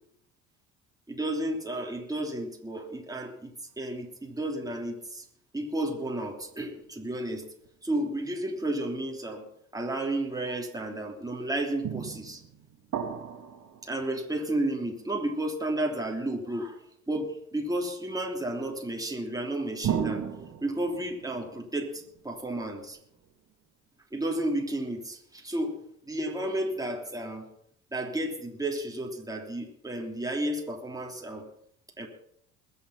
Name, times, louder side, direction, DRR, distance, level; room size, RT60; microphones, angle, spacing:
voice 1, 1.1-5.2 5.5-7.5 7.8-9.4 9.7-12.4 13.8-16.8 17.1-20.2 20.6-23.0 24.1-25.8 26.1-27.4 27.9-31.5 32.0-32.1, right 1 dB, 10° right, 1 dB, 3.2 m, -32 dB
sound 1, 6.3-6.9 7.6-7.7 11.8-14.6 19.8-23.3, right 8 dB, 50° right, 2.5 m, -36 dB
21.5 x 7.2 x 5.7 m, 0.70 s
hypercardioid pair, 60°, 40 cm